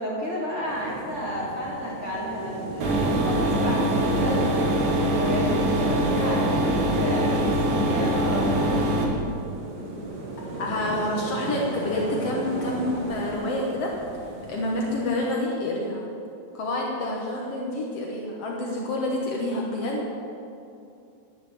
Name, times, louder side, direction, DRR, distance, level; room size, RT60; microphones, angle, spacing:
voice 1, 0.0-4.5 5.0-8.8, equal, 30° right, -7 dB, 1.4 m, -31 dB
sound 1, 0.7-15.1, right 2 dB, 75° right, 0.9 m, -36 dB
sound 2, 2.8-9.0, right 1 dB, 55° right, 2.3 m, -23 dB
voice 2, 10.6-13.9 14.5-16.1 16.5-20.1, left 1 dB, 85° left, -2 dB, 1.3 m, -28 dB
11.5 x 8.5 x 8.7 m, 2.6 s
omnidirectional pair, 4.9 m